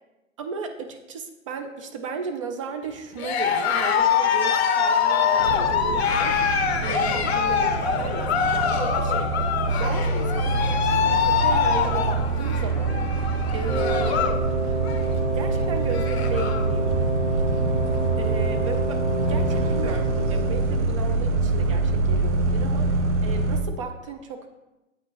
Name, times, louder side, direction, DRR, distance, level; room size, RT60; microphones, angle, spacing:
voice 1, 0.4-14.2 15.3-16.9 18.2-24.5, right 4 dB, 25° right, 5 dB, 0.4 m, -35 dB
Cheering, 3.1-14.4 14.7-15.1 15.6-15.7 15.8-16.7, left 7 dB, 50° left, 0.7 m, -24 dB
sound 1, 5.4-23.6, right 3 dB, 60° right, 0.9 m, -25 dB
Wind instrument woodwind instrument, 13.6-21.0, right 2 dB, 10° right, 2.0 m, -29 dB
7.9 x 5.8 x 2.9 m, 1.0 s
figure-of-eight pair, 115°, 40 cm